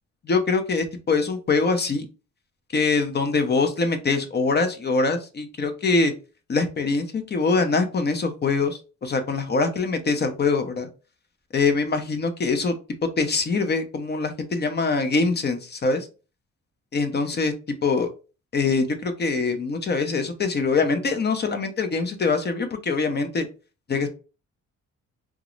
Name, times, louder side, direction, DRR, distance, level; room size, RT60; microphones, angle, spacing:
voice 1, 0.2-2.0 2.7-6.1 6.5-10.9 11.5-12.7 13.2-16.1 16.9-17.5 17.8-18.1 18.5-23.5 23.9-24.1, left 4 dB, 35° left, 7 dB, 0.7 m, -23 dB
3.5 x 2.0 x 3.1 m, 0.33 s
cardioid pair, 90°, 30 cm